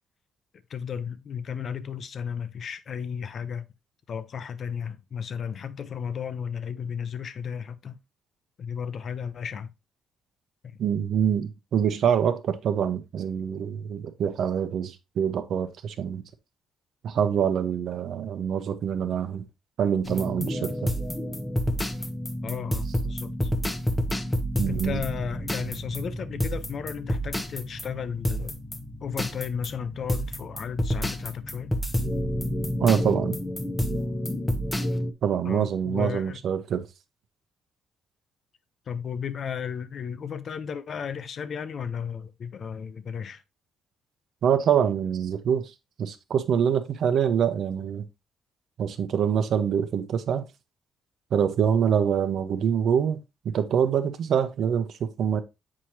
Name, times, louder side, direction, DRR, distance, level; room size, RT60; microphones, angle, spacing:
voice 1, 0.7-3.6 4.1-8.0 8.6-9.7 10.6-10.8 22.4-23.5 24.7-28.6 29.0-31.7 35.4-36.4 38.9-43.4, left 7 dB, 55° left, 0.7 m, -34 dB
voice 2, 10.8-16.2 17.0-19.4 19.8-20.9 24.6-25.0 32.8-33.4 35.2-36.8 44.4-45.6 46.0-48.0 48.8-50.4 51.3-53.2 53.4-55.4, right 8 dB, 65° right, 0.9 m, -25 dB
sound 1, 20.1-35.1, equal, 15° left, 0.9 m, -29 dB
7.4 x 4.8 x 2.8 m
cardioid pair, 90°, 0 cm